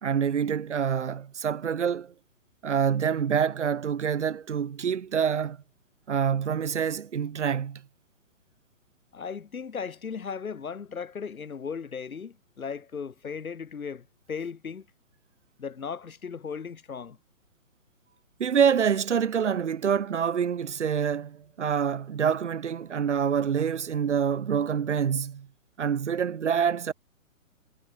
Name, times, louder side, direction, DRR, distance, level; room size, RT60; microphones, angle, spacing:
voice 1, 0.0-2.1 2.6-5.6 6.1-7.8 18.4-25.5 25.8-26.9, right 7 dB, 55° right, 2.0 m, -26 dB
voice 2, 9.1-14.9 15.6-17.2, left 6 dB, 90° left, 5.0 m, -36 dB
hypercardioid pair, 175°, 41 cm